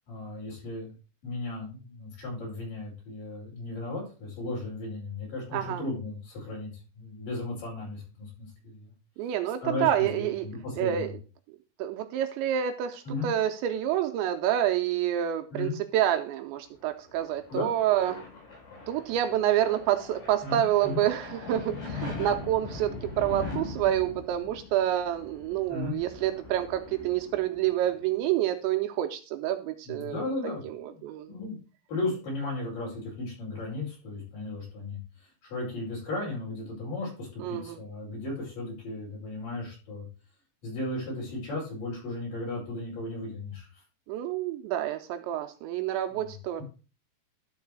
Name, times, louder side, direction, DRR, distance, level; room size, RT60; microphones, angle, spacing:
voice 1, 0.1-0.9 1.2-6.7 7.0-8.9 9.6-11.1 13.0-13.3 15.5-15.8 17.5-17.7 20.4-21.0 25.7-26.0 29.9-30.6 30.9-31.0 31.3-31.6 31.9-40.0 40.6-43.8 46.1-46.3, left 2 dB, 45° left, -3 dB, 6.3 m, -35 dB
voice 2, 5.5-5.8 9.2-10.5 10.8-11.1 11.8-18.2 18.9-30.3 30.6-31.3 37.4-37.8 44.1-46.6, right 11 dB, 80° right, 6 dB, 2.7 m, -28 dB
sound 1, 16.9-28.1, left 4 dB, 60° left, 6.9 m, -41 dB
12.5 x 4.7 x 4.6 m, 0.34 s
omnidirectional pair, 5.5 m